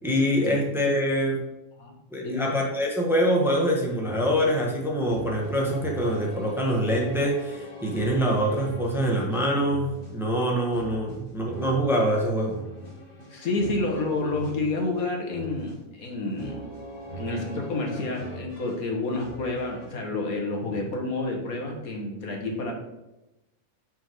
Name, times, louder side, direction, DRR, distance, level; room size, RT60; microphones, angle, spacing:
voice 1, 0.0-1.4 2.1-12.6, equal, ahead, -2 dB, 1.1 m, -25 dB
voice 2, 1.8-2.5 13.3-16.7 17.2-22.7, left 2 dB, 85° left, 2 dB, 1.8 m, -29 dB
sound 1, 4.0-19.9, equal, 15° left, 2.5 m, -41 dB
7.0 x 4.6 x 4.6 m, 0.96 s
omnidirectional pair, 1.5 m